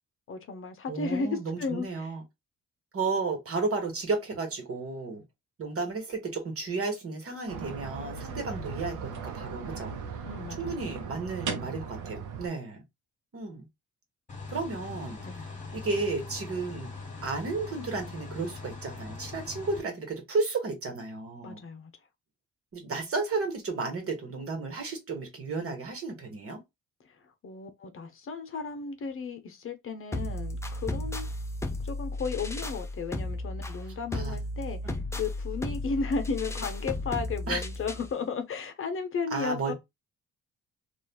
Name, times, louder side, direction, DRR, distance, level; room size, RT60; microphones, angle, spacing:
voice 1, 0.3-2.1 8.5-8.7 10.2-10.8 15.2-15.5 21.4-21.9 27.4-31.3 31.8-39.7, left 4 dB, 45° left, 0.7 m, -34 dB
voice 2, 0.9-2.2 2.9-5.2 5.6-9.9 10.6-12.8 13.3-13.7 14.5-15.2 15.7-16.9 17.2-21.6 22.7-26.6 34.1-34.3 34.8-35.0 37.5-37.6 39.3-39.7, right 3 dB, 50° right, 1.3 m, -33 dB
sound 1, 7.5-12.5, right 5 dB, 80° right, 0.8 m, -37 dB
sound 2, 14.3-19.8, left 3 dB, 25° left, 1.3 m, -41 dB
sound 3, 30.1-38.1, left 1 dB, 10° left, 0.4 m, -34 dB
3.1 x 2.5 x 2.2 m
cardioid pair, 90°, 30 cm